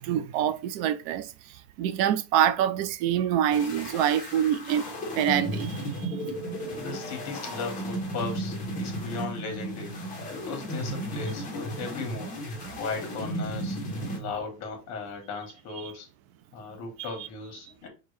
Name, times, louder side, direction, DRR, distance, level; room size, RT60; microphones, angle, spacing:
voice 1, 0.0-1.3 1.8-6.2 14.0-14.3 15.8-15.9 17.0-17.1, right 10 dB, 70° right, 0.5 m, -26 dB
sound 1, 3.5-14.2, right 1 dB, 20° left, 1.0 m, -34 dB
voice 2, 6.7-10.0 10.3-12.4 12.8-13.8 14.1-16.1 16.5-17.9, left 4 dB, 40° left, 1.3 m, -37 dB
5.3 x 2.4 x 3.2 m
cardioid pair, 180°, 42 cm